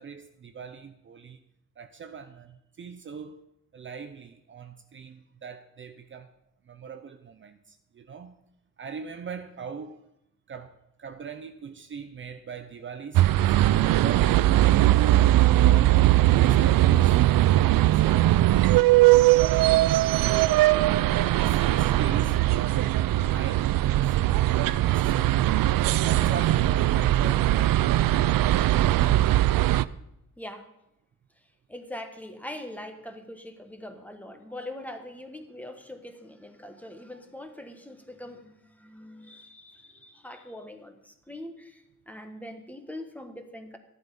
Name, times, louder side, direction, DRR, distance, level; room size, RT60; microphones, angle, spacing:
voice 1, 0.0-1.4 1.8-3.4 3.7-6.3 6.7-8.4 8.8-10.0 10.5-10.7 11.0-15.0 15.6-19.8 20.2-20.8 21.3-22.8 23.3-24.2 24.6-25.3 26.0-27.9 37.1-37.2, right 6 dB, 35° right, 7 dB, 0.7 m, -41 dB
sound 1, 13.1-29.8, right 15 dB, 90° right, 0.5 m, -20 dB
voice 2, 30.4-30.7 31.7-43.8, left 1 dB, 5° left, 6 dB, 1.3 m, -42 dB
14.0 x 11.5 x 5.4 m, 0.82 s
wide cardioid pair, 180°, 33 cm